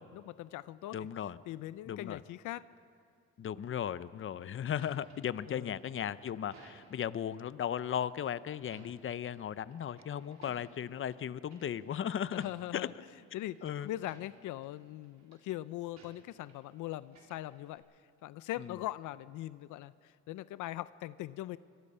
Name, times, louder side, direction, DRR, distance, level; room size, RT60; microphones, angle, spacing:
voice 1, 0.0-1.0 1.5-2.6 5.5-5.7 12.3-12.9 13.3-17.8 18.2-21.6, left 15 dB, 85° left, 16 dB, 0.5 m, -41 dB
voice 2, 0.9-1.4 1.9-2.2 3.4-12.4 12.7-12.9 13.6-13.9 18.6-18.8, left 9 dB, 45° left, 16 dB, 0.7 m, -36 dB
sound 1, 4.1-7.2 8.1-9.4 9.7-10.9 11.5-11.9 12.2-12.9 13.3-14.8 15.0-15.4 16.0-16.7 17.0-17.8, right 4 dB, 60° right, 4.0 m, -60 dB
25.5 x 22.0 x 5.6 m, 2.3 s
cardioid pair, 90°, 30 cm